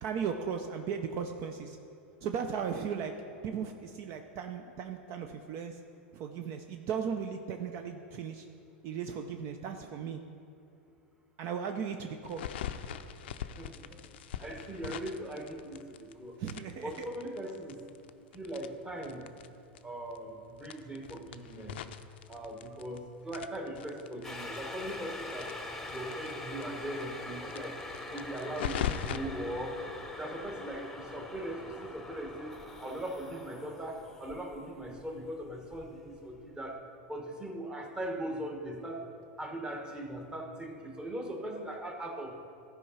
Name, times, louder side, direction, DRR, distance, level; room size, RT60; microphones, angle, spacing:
voice 1, 0.0-1.8 2.2-3.1 3.4-5.8 6.1-8.5 8.8-10.2 11.4-12.4 16.4-17.1, right 7 dB, 50° right, 6 dB, 0.5 m, -36 dB
sound 1, 12.2-16.1 16.4-19.5 19.8-19.9 20.1-20.2 20.6-23.0 23.3-26.3 26.6-26.7 27.0-27.1 27.5-29.2, left 10 dB, 80° left, 0.4 m, -40 dB
voice 2, 13.6-14.1 14.4-16.4 16.8-17.8 18.3-19.2 19.8-21.8 22.3-25.5 25.9-27.8 28.1-29.8 30.2-36.8 37.1-39.0 39.4-42.4, right 1 dB, 15° right, 3 dB, 1.2 m, -40 dB
sound 2, 24.2-36.3 36.7-36.8, left 2 dB, 5° left, 0.8 m, -44 dB
13.0 x 4.8 x 5.6 m, 2.6 s
hypercardioid pair, 115°, 6 cm